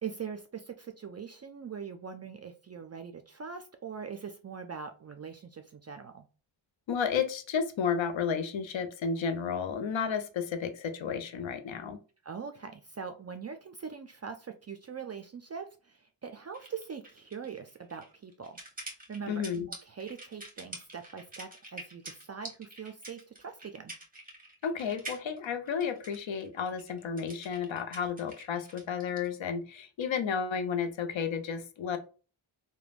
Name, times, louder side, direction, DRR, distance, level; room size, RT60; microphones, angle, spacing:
voice 1, 0.0-6.3 12.2-18.6 19.1-23.9, right 6 dB, 35° right, 7 dB, 0.4 m, -42 dB
voice 2, 6.9-12.0 19.3-19.7 24.6-32.0, left 6 dB, 70° left, 9 dB, 0.6 m, -32 dB
sound 1, 16.5-29.3, right 2 dB, 15° right, 1.0 m, -46 dB
3.2 x 2.2 x 2.4 m, 0.35 s
cardioid pair, 45°, 48 cm